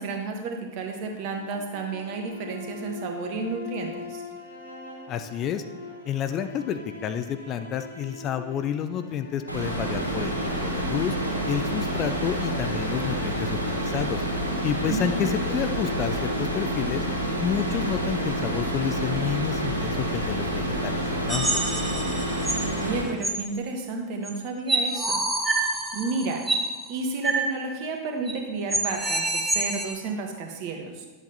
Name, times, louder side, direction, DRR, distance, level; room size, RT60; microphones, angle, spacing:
voice 1, 0.0-4.2 14.9-15.2 22.5-26.5 26.9-31.0, right 4 dB, 45° right, 3 dB, 1.3 m, -32 dB
sound 1, 1.0-15.1, left 3 dB, 80° left, 1.3 m, -42 dB
voice 2, 5.1-5.6 6.0-11.2 11.5-14.2 14.6-17.0 17.4-21.6, left 9 dB, 35° left, 9 dB, 0.4 m, -30 dB
sound 2, 9.5-23.0, right 1 dB, 85° right, 2.1 m, -28 dB
sound 3, 21.3-22.7 23.2-23.3 24.2-24.3 24.7-26.7 27.2-27.4 27.7-27.8 28.3-28.4 28.7-29.9, right 2 dB, 10° right, 1.0 m, -27 dB
10.5 x 7.9 x 2.8 m, 1.3 s
figure-of-eight pair, 90°, 0 cm